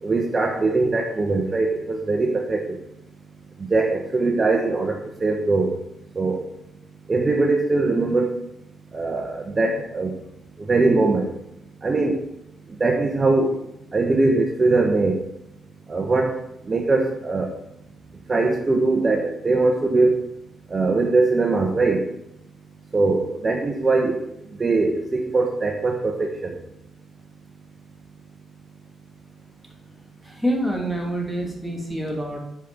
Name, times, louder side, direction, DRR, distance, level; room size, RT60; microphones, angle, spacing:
voice 1, 0.0-2.8 3.6-5.7 6.2-6.4 7.1-8.3 8.9-10.1 10.7-11.3 11.8-12.2 12.8-13.6 13.9-15.2 15.9-16.4 16.7-17.5 18.3-20.2 20.7-22.0 22.9-24.2 24.6-26.6, right 3 dB, 30° right, 2 dB, 1.1 m, -21 dB
voice 2, 30.2-32.4, equal, ahead, 0 dB, 2.6 m, -26 dB
8.1 x 5.1 x 6.1 m, 0.80 s
cardioid pair, 80°, 0 cm